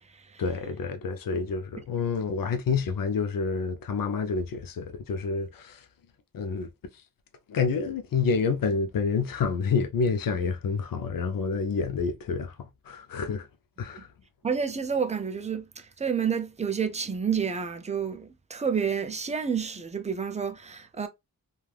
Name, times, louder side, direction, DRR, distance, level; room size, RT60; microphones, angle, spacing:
voice 1, 0.4-5.9 6.3-6.7 7.5-13.5 13.8-14.1, left 5 dB, 65° left, 0.6 m, -28 dB
voice 2, 14.4-21.1, right 6 dB, 20° right, 0.3 m, -29 dB
3.3 x 2.4 x 2.3 m
wide cardioid pair, 125°, 36 cm